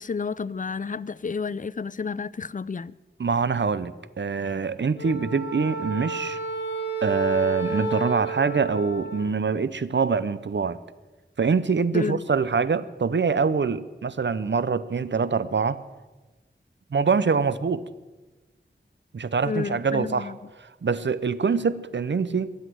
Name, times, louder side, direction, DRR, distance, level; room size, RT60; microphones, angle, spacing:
voice 1, 0.0-2.9 11.9-12.2 19.4-20.4, left 5 dB, 40° left, 0.4 m, -31 dB
voice 2, 3.2-6.4 7.0-10.8 11.4-15.8 16.9-17.8 19.1-20.3 20.8-22.5, right 5 dB, 65° right, 0.7 m, -24 dB
Wind instrument woodwind instrument, 5.0-9.4, right 3 dB, 60° left, 3.4 m, -31 dB
21.5 x 8.2 x 7.8 m
wide cardioid pair, 60°, 20 cm